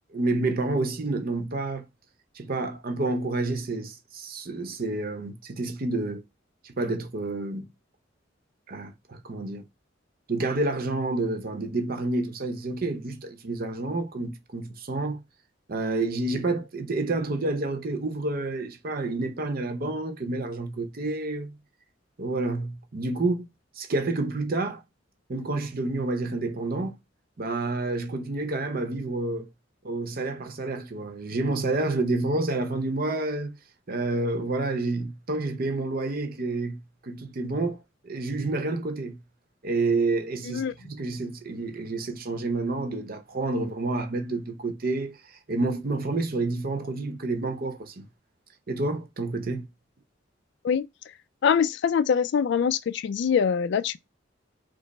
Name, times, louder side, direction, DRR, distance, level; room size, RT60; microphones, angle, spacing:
voice 1, 0.1-1.9 2.3-6.2 6.6-7.7 8.7-9.6 10.3-15.2 15.7-21.6 22.2-23.5 23.8-24.8 25.3-26.9 27.4-29.5 29.8-33.6 33.9-37.8 38.0-39.2 39.6-45.2 45.5-48.1 48.7-49.7, right 2 dB, 50° right, 0.8 m, -29 dB
voice 2, 51.4-54.0, left 7 dB, 65° left, 0.3 m, -24 dB
5.2 x 2.0 x 4.1 m
head